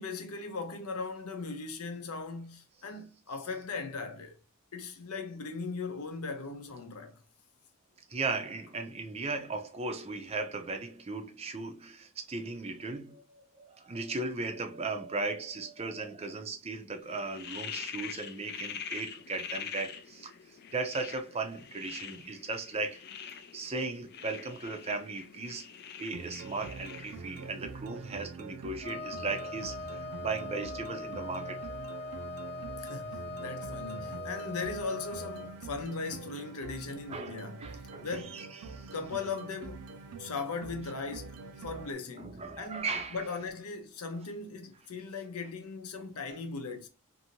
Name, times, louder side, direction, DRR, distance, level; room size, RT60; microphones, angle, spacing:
voice 1, 0.0-4.3 4.7-7.2 32.8-38.5 38.9-39.9 40.2-41.4 41.6-46.9, left 4 dB, 75° left, 0.7 m, -38 dB
voice 2, 8.1-13.2 13.6-25.7 26.0-31.7 37.1-38.9 42.2-43.2, right 3 dB, 25° right, 0.5 m, -37 dB
sound 1, 17.0-27.8, left 8 dB, 45° left, 0.3 m, -44 dB
sound 2, 26.1-41.9, right 4 dB, 85° right, 0.5 m, -45 dB
Wind instrument woodwind instrument, 28.8-35.5, left 2 dB, 30° left, 0.8 m, -41 dB
2.7 x 2.6 x 2.9 m
head